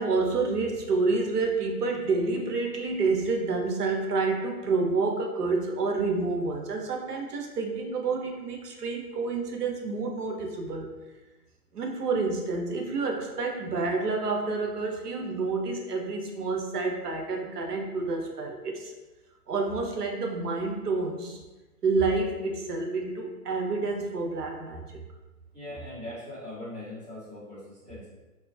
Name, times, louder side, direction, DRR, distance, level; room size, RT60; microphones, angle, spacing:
voice 1, 0.0-10.9 11.7-18.9 19.5-21.4 21.8-25.0, right 3 dB, 75° right, 2 dB, 0.6 m, -29 dB
voice 2, 25.5-28.0, left 1 dB, 5° right, -17 dB, 0.7 m, -40 dB
2.6 x 2.2 x 2.3 m, 1.2 s
figure-of-eight pair, 125°, 48 cm